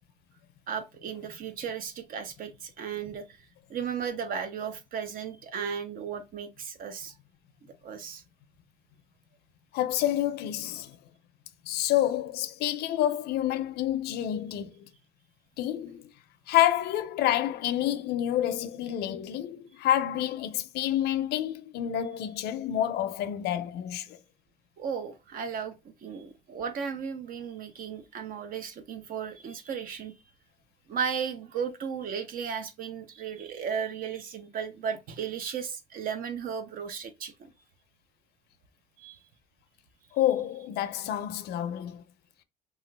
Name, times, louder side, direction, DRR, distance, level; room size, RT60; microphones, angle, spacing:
voice 1, 0.7-3.4 3.7-7.1 7.8-8.2 24.8-30.1 30.9-37.5 39.0-39.2, right 7 dB, 55° right, 0.7 m, -35 dB
voice 2, 9.7-11.0 11.6-14.9 15.6-16.1 16.5-24.2 40.1-42.0, left 12 dB, 75° left, 0.5 m, -28 dB
2.9 x 2.3 x 3.2 m
cardioid pair, 110°, 17 cm